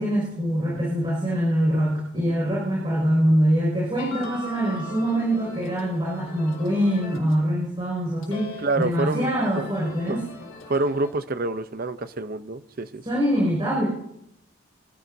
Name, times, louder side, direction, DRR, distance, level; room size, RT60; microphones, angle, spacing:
voice 1, 0.0-10.3 13.0-13.9, equal, 25° right, -5 dB, 6.0 m, -24 dB
sound 1, 4.0-7.5 7.8-11.1, left 3 dB, 90° left, 3.7 m, -41 dB
voice 2, 8.6-9.3 9.6-9.7 10.1-10.2 10.7-13.0, right 2 dB, 45° right, 11 dB, 0.7 m, -27 dB
24.5 x 15.0 x 2.7 m, 0.81 s
head